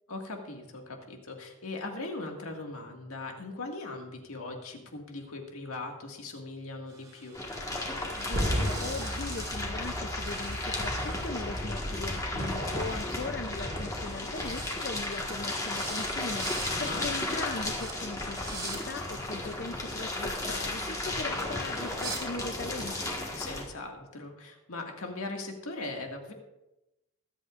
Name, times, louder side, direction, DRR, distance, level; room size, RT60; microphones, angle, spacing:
voice 1, 0.1-7.4 16.7-17.0 23.3-26.3, left 2 dB, 90° left, 2 dB, 1.9 m, -39 dB
sound 1, 6.9-10.0 10.3-11.8 13.1-13.3 13.5-13.8 14.0-14.8 15.1-15.4 15.8-16.1 16.3-16.7 17.2-17.4 17.8-17.9 18.4-18.8 20.0-22.2, right 3 dB, 15° right, 2.4 m, -44 dB
sound 2, 7.3-23.6, left 2 dB, 15° left, 1.5 m, -34 dB
voice 2, 8.1-23.2, left 3 dB, 45° left, 7 dB, 0.5 m, -39 dB
sound 3, 8.3-14.2, equal, 50° right, 2.1 m, -35 dB
24.0 x 8.1 x 2.5 m, 0.96 s
head